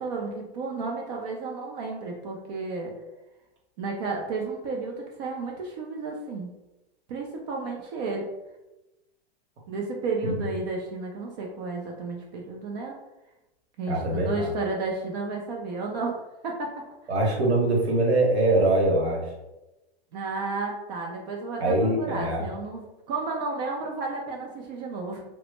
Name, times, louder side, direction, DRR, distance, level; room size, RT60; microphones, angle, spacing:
voice 1, 0.0-2.9 3.8-6.5 7.1-8.3 9.7-13.0 13.8-16.7 20.1-25.2, right 3 dB, 45° right, 0 dB, 0.4 m, -32 dB
voice 2, 13.9-14.5 17.1-19.3 21.6-22.4, right 2 dB, 90° right, -1 dB, 0.9 m, -23 dB
2.0 x 2.0 x 3.1 m, 0.99 s
hypercardioid pair, 130°, 32 cm